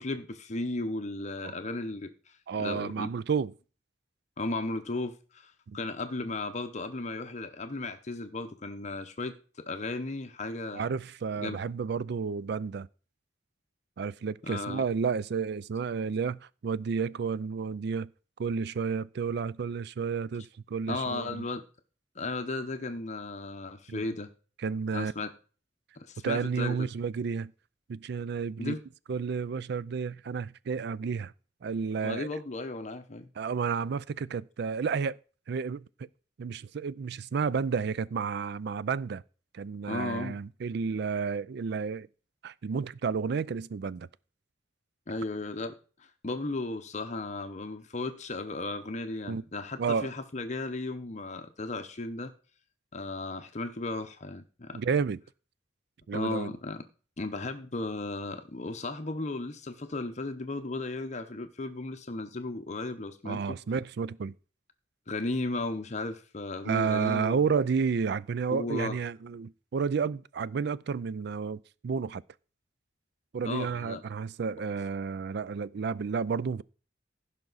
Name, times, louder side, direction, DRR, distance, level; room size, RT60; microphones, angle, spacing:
voice 1, 0.0-3.1 4.4-10.8 11.4-11.6 14.4-14.8 20.9-21.6 22.2-24.3 24.9-25.3 26.0-26.9 28.6-28.8 32.0-33.3 39.9-40.4 45.1-52.3 52.9-54.8 56.1-56.8 57.2-63.6 65.1-67.4 68.5-69.0 73.4-74.0, left 2 dB, 40° left, 0.8 m, -35 dB
voice 2, 2.5-3.5 5.7-5.8 10.7-12.9 14.0-18.1 18.4-21.5 23.9-24.0 24.6-25.1 26.2-27.5 27.9-28.7 29.1-31.3 31.6-32.3 33.4-35.2 35.5-36.1 36.4-39.2 39.5-42.1 42.4-44.1 49.3-49.4 49.8-50.1 54.7-55.2 56.1-56.5 63.3-64.3 66.6-72.2 73.3-76.6, right 5 dB, 60° right, 0.4 m, -31 dB
15.5 x 5.9 x 4.0 m
head